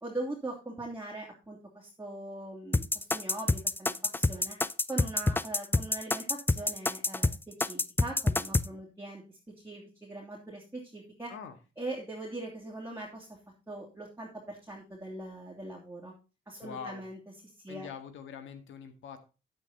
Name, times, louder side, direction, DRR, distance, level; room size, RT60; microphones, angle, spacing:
voice 1, 0.0-4.6 4.9-9.4 9.6-11.3 11.8-13.4 13.7-16.1 16.5-17.2 17.6-17.9, right 2 dB, 10° right, -3 dB, 2.7 m, -41 dB
sound 1, 2.7-8.7, left 2 dB, 10° left, 0.5 m, -27 dB
voice 2, 16.6-17.0 17.7-19.2, left 7 dB, 75° left, 9 dB, 1.9 m, -43 dB
9.5 x 8.3 x 4.2 m, 0.31 s
cardioid pair, 90°, 20 cm